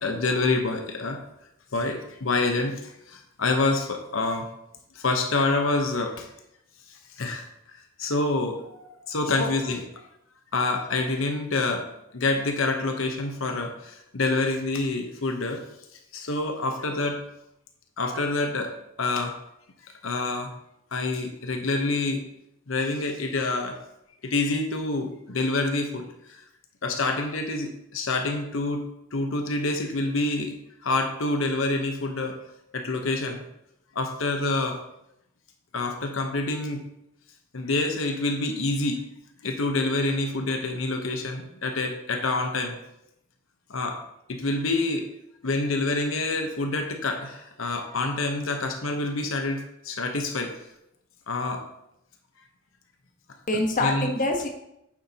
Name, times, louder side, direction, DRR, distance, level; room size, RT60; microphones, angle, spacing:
voice 1, 0.0-1.2 1.7-4.4 4.9-6.3 7.2-8.6 8.9-9.8 10.5-11.9 12.1-15.6 16.1-17.2 18.0-18.7 19.0-19.3 19.8-20.5 20.9-22.2 22.7-23.8 24.2-26.1 26.8-28.8 29.1-30.5 30.8-32.4 32.7-33.4 33.9-34.8 35.7-36.8 37.5-39.0 39.4-42.8 43.7-44.0 44.3-45.0 45.4-50.5 51.3-51.6 53.8-54.1, left 2 dB, 80° left, 4 dB, 0.9 m, -27 dB
voice 2, 9.3-9.8 53.5-54.5, left 2 dB, 40° left, 3 dB, 1.1 m, -26 dB
9.3 x 7.3 x 2.9 m, 0.82 s
head